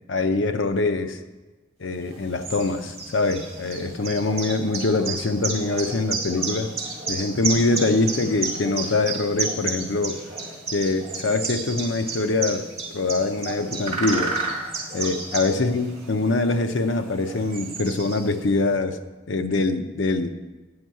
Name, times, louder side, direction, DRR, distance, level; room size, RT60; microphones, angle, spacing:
voice 1, 0.1-1.2 1.8-6.7 7.1-10.2 10.7-14.4 14.9-19.0 19.3-20.3, left 3 dB, 70° left, 9 dB, 0.6 m, -24 dB
sound 1, 2.0-18.6, right 3 dB, 30° right, 2.2 m, -32 dB
9.6 x 5.4 x 7.5 m, 1.2 s
head